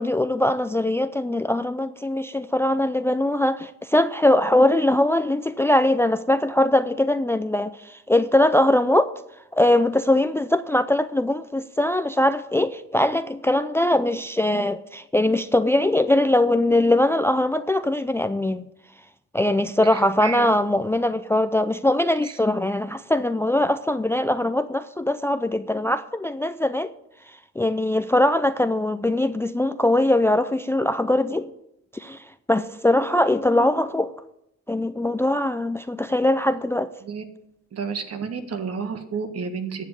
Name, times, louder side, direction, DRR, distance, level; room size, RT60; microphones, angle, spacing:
voice 1, 0.0-9.1 9.5-18.7 19.3-26.9 27.6-31.5 31.9-34.1 34.7-36.9, left 1 dB, 10° left, 0.4 m, -21 dB
voice 2, 19.9-20.5 22.2-22.4 37.0-37.2 37.7-39.8, right 5 dB, 55° right, 1.6 m, -31 dB
11.0 x 7.4 x 8.3 m
cardioid pair, 90°, 30 cm